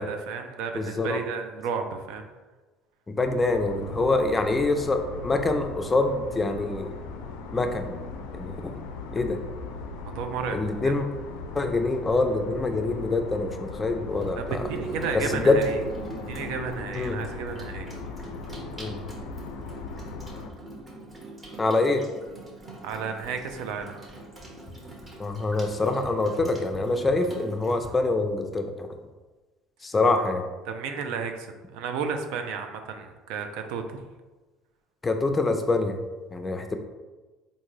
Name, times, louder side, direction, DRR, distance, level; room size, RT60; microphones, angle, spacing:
voice 1, 0.0-2.3 10.0-10.6 10.8-10.9 14.4-15.7 16.3-17.9 18.6-18.7 22.8-23.9 30.7-34.0, right 5 dB, 75° right, 6 dB, 0.4 m, -33 dB
voice 2, 0.7-1.2 3.1-6.9 7.5-8.0 8.3-8.8 9.1-9.4 10.5-11.1 11.5-14.6 15.3-15.7 16.9-17.2 18.8-19.0 21.6-22.1 25.2-28.9 29.8-30.4 35.0-36.0 36.3-36.8, left 2 dB, 20° left, 6 dB, 0.4 m, -25 dB
sound 1, 3.2-20.5, left 4 dB, 85° left, 0.3 m, -39 dB
Water tap faucet / Sink (filling or washing), 14.1-27.9, right 1 dB, 25° right, 1.0 m, -41 dB
3.6 x 2.6 x 3.1 m, 1.2 s
supercardioid pair, 90°, 0 cm